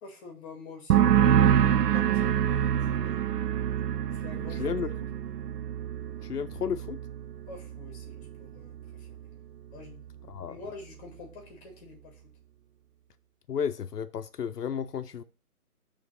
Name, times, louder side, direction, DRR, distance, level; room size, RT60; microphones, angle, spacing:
voice 1, 0.0-3.2 4.1-5.0 7.5-9.3 9.7-12.2, left 4 dB, 15° left, 1.4 m, -47 dB
sound 1, 0.9-8.4 8.6-9.2, right 10 dB, 90° right, 0.6 m, -26 dB
voice 2, 4.6-4.9 6.2-7.0 10.3-10.6 13.5-15.2, left 7 dB, 80° left, 0.7 m, -32 dB
6.5 x 3.1 x 5.4 m
hypercardioid pair, 155°, 46 cm